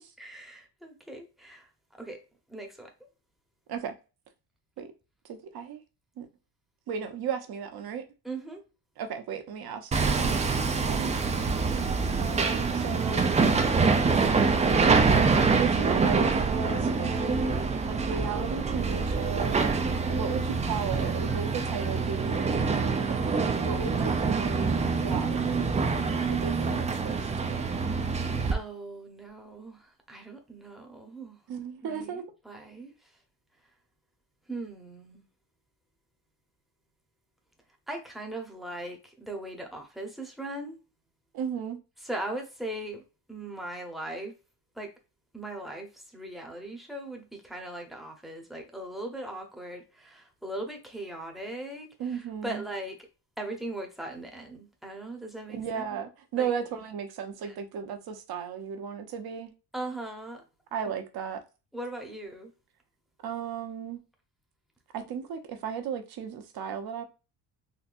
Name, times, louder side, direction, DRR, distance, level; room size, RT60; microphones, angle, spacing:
voice 1, 0.2-1.7 2.0-2.2 2.5-2.9 8.2-8.6 28.5-31.4 31.8-33.1 34.5-35.3 37.9-40.8 42.0-43.0 43.3-44.3 44.7-44.9 45.3-53.0 53.4-55.9 56.4-56.5 57.4-57.5 59.7-60.4 60.8-60.9 61.7-62.5, right 1 dB, ahead, 0.8 m, -39 dB
voice 2, 5.3-5.8 6.2-6.3 6.9-8.0 9.0-10.2 10.8-11.4 12.2-13.3 13.9-14.1 15.6-19.6 20.1-23.2 23.6-27.7 31.5-32.2 41.3-41.8 52.0-52.6 55.5-59.5 60.7-61.4 63.2-64.0 64.9-67.0, right 7 dB, 55° right, 0.8 m, -35 dB
Hammer, 9.9-28.5, right 4 dB, 15° right, 0.3 m, -25 dB
4.0 x 2.6 x 2.5 m
cardioid pair, 130°, 45 cm